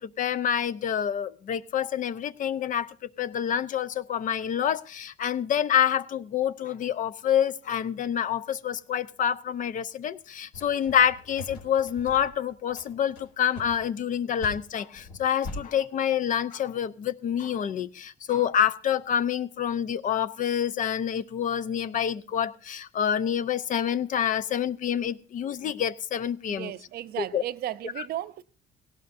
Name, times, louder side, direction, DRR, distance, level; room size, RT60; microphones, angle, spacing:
voice 1, 0.0-26.7 27.3-27.4, left 9 dB, 50° left, 0.7 m, -27 dB
sound 1, 10.5-15.6, left 2 dB, 80° left, 4.4 m, -42 dB
voice 2, 26.5-28.4, right 13 dB, 65° right, 0.6 m, -35 dB
17.5 x 17.5 x 2.6 m
cardioid pair, 110°, 17 cm